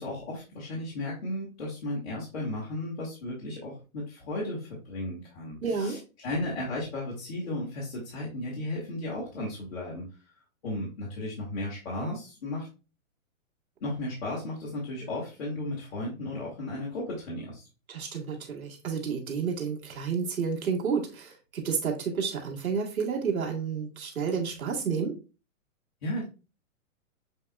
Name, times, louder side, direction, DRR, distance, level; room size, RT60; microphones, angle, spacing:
voice 1, 0.0-10.1 10.6-12.7 13.8-17.6 26.0-26.2, left 1 dB, 50° left, -6 dB, 1.7 m, -35 dB
voice 2, 5.6-6.0 17.9-25.1, right 6 dB, 90° right, 0 dB, 1.8 m, -30 dB
6.9 x 2.9 x 2.2 m, 0.32 s
hypercardioid pair, 175°, 41 cm